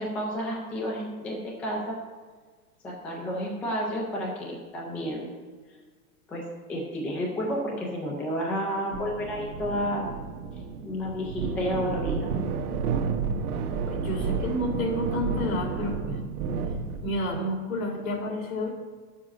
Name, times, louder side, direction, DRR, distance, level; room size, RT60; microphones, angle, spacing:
voice 1, 0.0-1.9 2.8-5.3 6.3-6.4 6.7-10.1 10.5-12.3, equal, 5° left, -2 dB, 0.4 m, -31 dB
sound 1, 8.9-17.3, right 5 dB, 85° right, 1.4 m, -31 dB
voice 2, 13.9-16.2 17.0-18.7, left 1 dB, 75° left, 1 dB, 3.0 m, -30 dB
11.0 x 7.3 x 6.0 m, 1.5 s
supercardioid pair, 165°, 44 cm